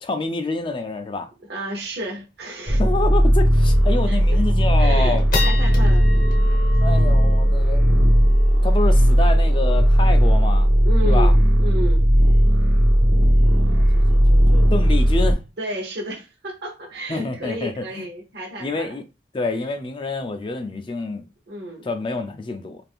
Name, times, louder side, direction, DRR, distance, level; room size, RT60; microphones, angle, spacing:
voice 1, 0.0-1.3 2.8-5.2 6.8-8.0 8.5-10.7 11.1-11.3 13.6-15.4 17.1-18.1 18.6-19.0 19.3-21.3 21.8-22.8, left 3 dB, 25° left, 0.3 m, -27 dB
voice 2, 1.5-2.8 4.1-4.4 4.8-6.1 10.8-12.1 15.6-18.9 21.5-21.9, equal, 60° right, 0.7 m, -32 dB
sound 1, 1.8-1.9 2.2-2.3 2.7-2.9 3.4-3.5 4.0-4.4 4.8-11.4, left 5 dB, 45° left, 0.7 m, -34 dB
sound 2, 2.7-15.3, equal, 85° right, 1.0 m, -16 dB
2.4 x 2.4 x 3.5 m
head